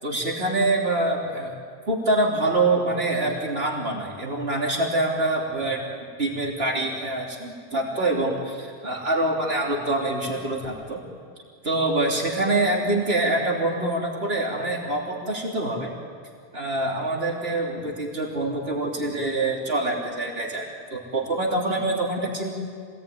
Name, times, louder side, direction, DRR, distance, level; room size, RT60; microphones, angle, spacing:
voice 1, 0.0-1.5 1.9-11.0 11.6-15.9 16.5-22.5, right 2 dB, 75° right, -2 dB, 3.6 m, -25 dB
26.0 x 19.0 x 9.3 m, 2.1 s
omnidirectional pair, 1.0 m